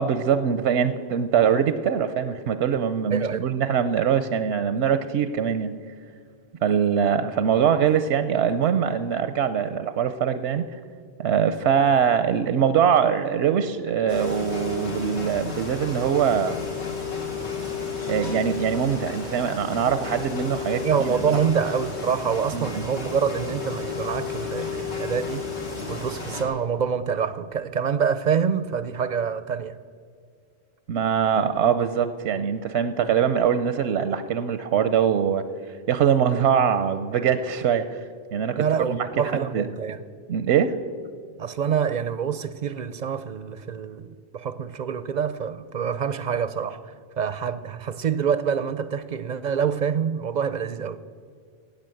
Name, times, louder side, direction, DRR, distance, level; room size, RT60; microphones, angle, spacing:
voice 1, 0.0-5.7 6.6-10.6 11.2-16.6 18.1-21.4 22.5-22.9 30.9-38.0 38.3-39.7 40.3-40.8, right 8 dB, 90° right, 0.9 m, -23 dB
voice 2, 3.1-3.4 20.8-29.8 38.6-40.0 41.4-51.0, right 7 dB, 55° right, 0.5 m, -26 dB
sound 1, 14.1-26.4, left 5 dB, 90° left, 2.3 m, -32 dB
16.0 x 8.7 x 7.7 m
omnidirectional pair, 1.1 m